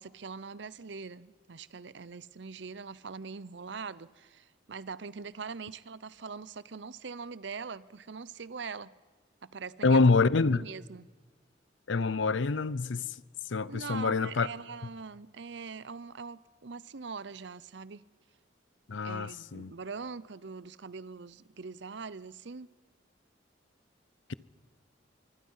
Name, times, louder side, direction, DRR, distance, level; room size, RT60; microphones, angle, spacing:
voice 1, 0.0-8.9 9.4-10.0 10.5-11.1 13.7-18.0 19.0-22.7, right 5 dB, 65° right, 0.7 m, -42 dB
voice 2, 9.8-10.6 11.9-13.1 13.5-14.5 18.9-19.7, left 3 dB, 75° left, 0.7 m, -26 dB
25.5 x 24.0 x 5.7 m
head